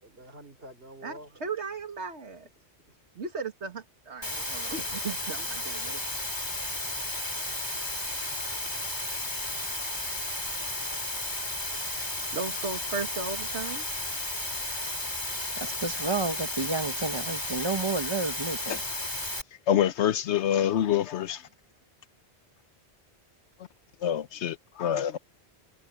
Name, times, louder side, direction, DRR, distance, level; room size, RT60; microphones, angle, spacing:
voice 1, 0.0-1.5 2.4-3.0, right 1 dB, 60° right, 4.0 m, -48 dB
voice 2, 1.4-2.4 3.2-6.0 12.3-13.8, right 4 dB, 90° right, 2.2 m, -36 dB
Water, 4.2-19.4, left 1 dB, 25° left, 2.6 m, -33 dB
voice 3, 15.5-18.8, right 3 dB, 25° right, 1.3 m, -31 dB
voice 4, 19.7-21.4 24.0-25.2, left 10 dB, 85° left, 1.0 m, -26 dB
omnidirectional pair, 1.1 m